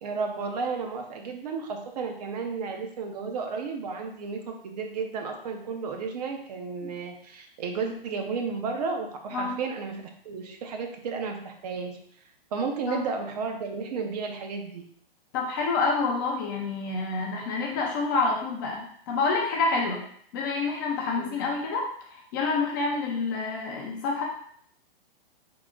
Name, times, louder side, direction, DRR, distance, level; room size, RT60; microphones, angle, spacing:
voice 1, 0.0-12.0 12.5-14.8 21.2-21.3, right 5 dB, 40° right, 4 dB, 0.5 m, -33 dB
voice 2, 15.3-20.0 20.3-24.2, left 4 dB, 20° left, -1 dB, 0.4 m, -28 dB
3.7 x 2.1 x 3.7 m, 0.63 s
hypercardioid pair, 140°, 30 cm